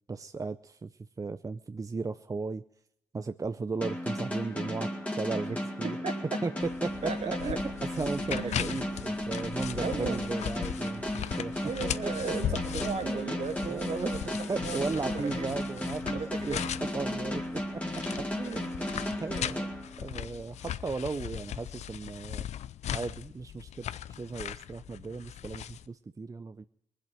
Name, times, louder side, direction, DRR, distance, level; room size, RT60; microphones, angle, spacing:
voice 1, 0.1-0.9 1.2-2.6 3.1-4.9 5.2-6.0 6.4-6.5 6.8-7.1 7.4-7.6 8.0-11.5 12.0-12.6 13.0-13.4 13.7-14.1 14.5-16.2 16.5-17.6 18.1-18.9 19.2-19.7 20.0-22.5 22.9-23.9 24.2-26.6, right 4 dB, 30° right, 11 dB, 0.6 m, -36 dB
sound 1, 3.8-20.4, left 1 dB, 10° left, 2.4 m, -35 dB
voice 2, 5.8-6.4 7.0-7.6 8.4-8.9 9.8-10.3 11.6-15.6 16.1-16.6, right 5 dB, 65° right, 4 dB, 2.5 m, -36 dB
sound 2, 6.6-25.9, left 11 dB, 70° left, 0.5 m, -39 dB
20.0 x 7.8 x 9.0 m, 0.77 s
supercardioid pair, 55°, 12 cm